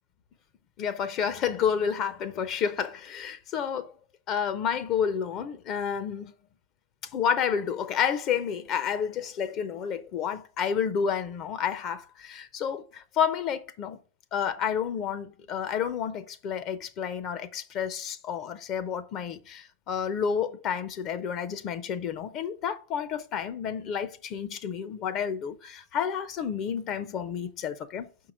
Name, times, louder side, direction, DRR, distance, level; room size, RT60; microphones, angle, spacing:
voice 1, 0.8-3.9 4.3-6.3 7.0-14.0 14.3-28.3, left 7 dB, 40° left, 0.8 m, -30 dB
5.6 x 4.7 x 5.1 m
hypercardioid pair, 115°, 0 cm